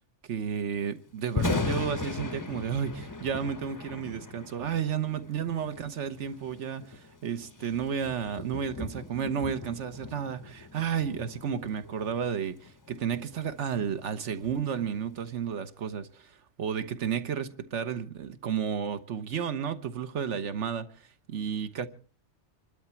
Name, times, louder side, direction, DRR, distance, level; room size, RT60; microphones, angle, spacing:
voice 1, 0.3-16.2 16.6-20.9 21.3-21.9, right 7 dB, 70° right, 1.4 m, -32 dB
Thunder, 1.2-15.4, left 3 dB, 20° left, 0.6 m, -38 dB
26.0 x 12.5 x 4.4 m
omnidirectional pair, 1.3 m